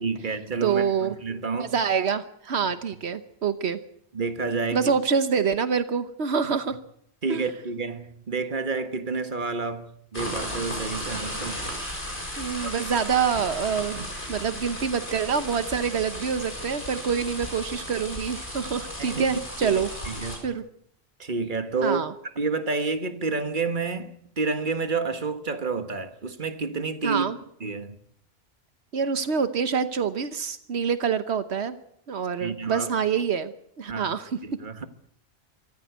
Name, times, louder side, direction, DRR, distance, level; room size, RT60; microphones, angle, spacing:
voice 1, 0.0-1.7 4.1-4.9 7.2-11.6 12.6-12.7 14.0-14.1 19.0-20.5 21.2-22.0 22.4-27.3 27.6-28.0 32.4-32.9 33.9-34.1 34.4-34.9, right 4 dB, 50° right, 1.7 m, -29 dB
voice 2, 0.6-1.2 1.6-3.8 4.7-6.8 7.3-7.5 12.4-14.0 14.3-19.9 20.4-20.6 21.8-22.1 27.0-27.4 28.9-31.8 32.1-34.3, right 6 dB, 85° right, 1.3 m, -26 dB
sound 1, 10.1-20.4, equal, 50° left, 6.7 m, -35 dB
25.0 x 14.0 x 8.1 m
omnidirectional pair, 1.1 m